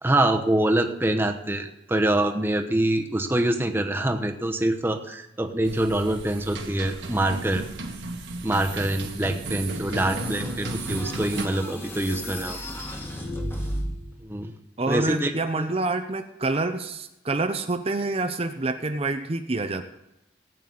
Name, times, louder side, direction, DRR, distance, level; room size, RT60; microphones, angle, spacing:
voice 1, 0.0-7.6 8.4-12.6 14.2-14.5 14.9-15.3 15.6-15.7, right 1 dB, 10° right, 5 dB, 1.0 m, -25 dB
sound 1, 5.6-11.5, right 2 dB, 80° right, 1.8 m, -34 dB
sound 2, 9.9-14.2, equal, 15° left, 1.7 m, -34 dB
voice 2, 14.8-19.8, right 2 dB, 30° right, 7 dB, 0.7 m, -27 dB
19.0 x 9.1 x 4.0 m, 0.88 s
head